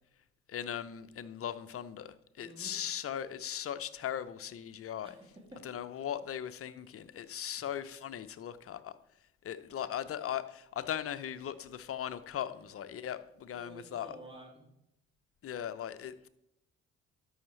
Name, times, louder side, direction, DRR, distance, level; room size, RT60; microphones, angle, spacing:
voice 1, 0.5-5.1 5.6-8.9 9.4-14.1 15.4-16.3, left 10 dB, 45° left, 12 dB, 0.7 m, -39 dB
voice 2, 2.4-2.8 5.0-5.7 13.5-14.7, right 1 dB, 15° right, -1 dB, 2.6 m, -51 dB
12.5 x 5.6 x 3.2 m, 0.78 s
hypercardioid pair, 55°, 33 cm